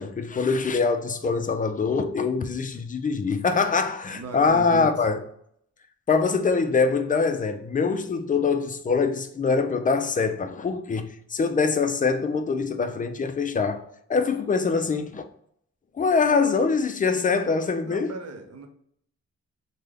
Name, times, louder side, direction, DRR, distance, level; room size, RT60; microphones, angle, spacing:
voice 1, 0.0-5.2 6.1-13.8 14.1-15.2 15.9-18.1, left 4 dB, 30° left, 0.4 m, -24 dB
voice 2, 4.1-5.1 17.8-18.7, right 1 dB, 60° right, 0.7 m, -37 dB
3.2 x 2.2 x 3.5 m
cardioid pair, 85°, 29 cm